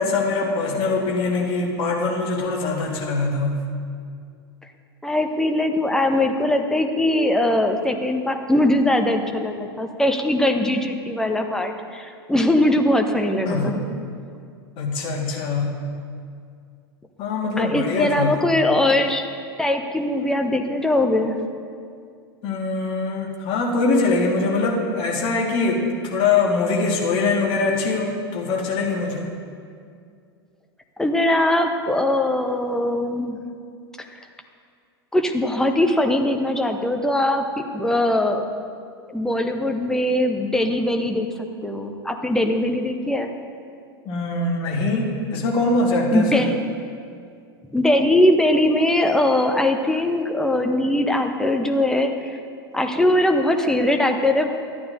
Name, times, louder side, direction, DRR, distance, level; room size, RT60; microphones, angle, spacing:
voice 1, 0.0-3.6 13.4-13.7 14.8-15.7 17.2-18.4 22.4-29.3 44.0-46.5, left 3 dB, 40° left, -1 dB, 1.6 m, -23 dB
voice 2, 5.0-13.8 17.6-19.2 19.6-21.4 31.0-33.4 34.0-34.1 35.1-37.4 37.7-38.4 39.1-43.3 46.1-46.6 47.7-52.4 52.7-54.5, left 1 dB, 5° left, 5 dB, 0.7 m, -21 dB
13.5 x 9.3 x 2.6 m, 2.3 s
figure-of-eight pair, 90°, 13 cm